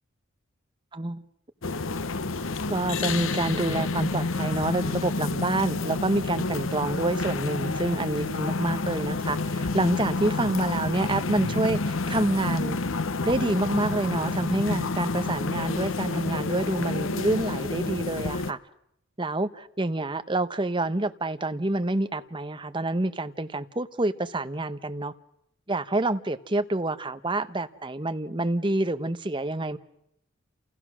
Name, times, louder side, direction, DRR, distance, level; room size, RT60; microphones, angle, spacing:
voice 1, 0.9-1.2 2.7-12.8 13.3-18.6 19.2-25.1 25.7-29.8, right 2 dB, 25° right, 1.0 m, -27 dB
sound 1, 1.6-18.5, left 3 dB, 70° left, 0.9 m, -29 dB
30.0 x 28.5 x 6.3 m
head